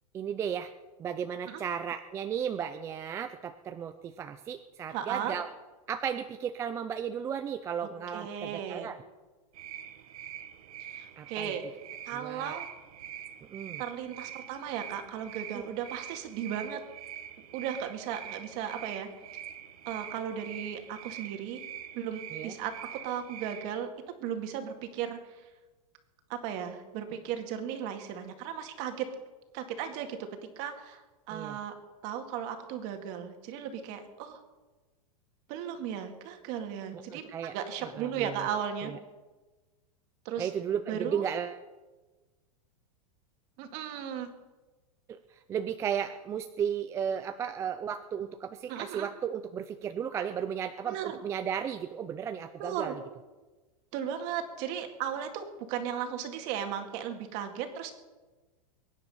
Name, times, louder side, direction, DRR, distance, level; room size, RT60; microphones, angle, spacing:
voice 1, 0.1-0.7 1.0-5.5 5.9-9.0 11.2-11.5 12.1-12.6 13.5-13.8 15.5-15.6 22.3-22.6 31.3-31.6 36.9-38.5 38.8-39.0 40.4-41.6 45.1-53.0, right 8 dB, 15° right, 9 dB, 0.4 m, -35 dB
voice 2, 4.9-5.4 8.1-8.9 10.9-11.6 12.1-12.7 13.8-16.8 17.5-19.1 19.9-21.6 21.9-22.7 23.0-23.9 24.2-25.4 26.3-29.1 29.5-30.2 30.6-31.0 31.3-31.7 32.0-34.4 35.5-38.9 40.3-40.5 40.9-41.2 43.6-44.3 48.7-49.1 50.9-51.2 52.6-52.9 53.9-57.9, right 9 dB, 40° right, 6 dB, 2.1 m, -36 dB
sound 1, 9.5-23.7, right 10 dB, 70° right, 1.7 m, -44 dB
23.0 x 10.0 x 5.5 m, 1.2 s
supercardioid pair, 160°, 19 cm